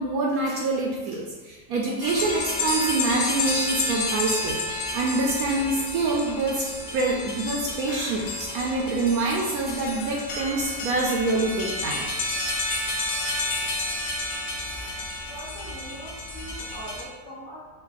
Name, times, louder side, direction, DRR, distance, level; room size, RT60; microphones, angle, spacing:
voice 1, 0.0-4.6 4.9-6.7 6.9-12.1 14.7-14.9, right 2 dB, 70° right, -1 dB, 1.0 m, -26 dB
sound 1, 2.0-17.0, left 2 dB, 65° left, 1.0 m, -30 dB
voice 2, 15.3-17.7, equal, 45° left, -7 dB, 1.7 m, -41 dB
5.3 x 2.4 x 4.0 m, 1.3 s
omnidirectional pair, 1.8 m